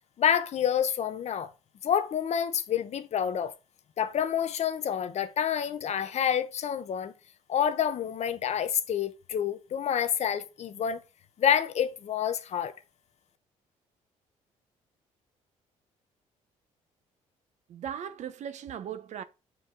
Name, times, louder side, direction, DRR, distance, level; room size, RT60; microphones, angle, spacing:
voice 1, 0.2-1.5 1.8-3.5 4.0-7.1 7.5-11.0 11.4-12.8, left 8 dB, 55° left, 0.8 m, -28 dB
voice 2, 17.7-19.2, right 9 dB, 60° right, 0.7 m, -38 dB
6.3 x 4.7 x 3.7 m
cardioid pair, 85°, 14 cm